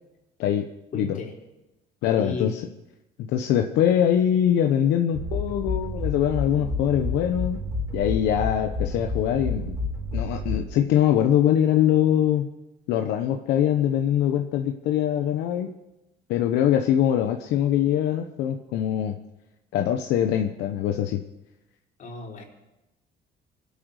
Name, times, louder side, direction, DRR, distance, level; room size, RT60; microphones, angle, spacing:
voice 1, 0.9-1.3 2.2-2.5 22.0-22.4, left 3 dB, 50° left, -1 dB, 4.4 m, -33 dB
voice 2, 2.0-2.7 3.3-7.6 7.9-9.8 10.1-12.5 12.9-15.7 16.3-19.2 19.7-21.2, left 10 dB, 85° left, 5 dB, 1.0 m, -23 dB
sound 1, 5.1-11.0, left 2 dB, 15° right, 3.7 m, -30 dB
24.5 x 8.6 x 6.5 m, 0.97 s
cardioid pair, 110°, 17 cm